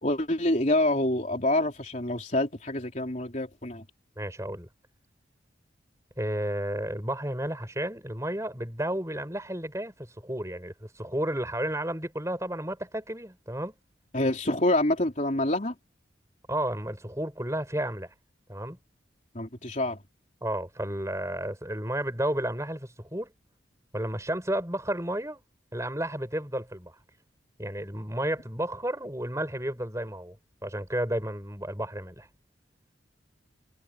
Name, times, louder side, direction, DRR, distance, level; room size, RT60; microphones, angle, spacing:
voice 1, 0.0-3.9 14.1-15.7 19.3-20.0, left 1 dB, 40° left, 3.9 m, -26 dB
voice 2, 4.2-4.7 6.2-13.7 16.5-18.1 18.5-18.8 20.4-23.3 23.9-25.4 25.7-27.0 27.6-30.4 30.6-32.3, right 1 dB, 15° right, 7.4 m, -32 dB
head